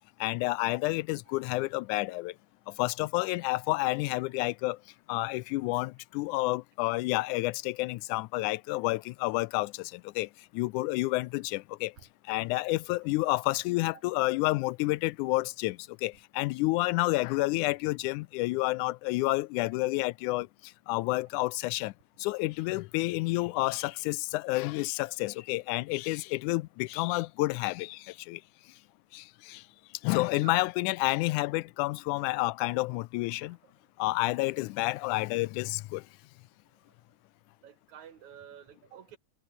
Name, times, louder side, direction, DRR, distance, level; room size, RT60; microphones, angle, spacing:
voice 1, 0.2-2.3 2.8-4.8 5.1-10.3 10.5-11.9 12.3-20.5 20.9-21.9 22.2-28.4 29.1-29.6 30.0-33.6 34.0-36.0, left 21 dB, 80° left, 2.0 m, -30 dB
voice 2, 37.6-39.2, right 9 dB, 65° right, 3.4 m, -49 dB
omnidirectional pair, 3.6 m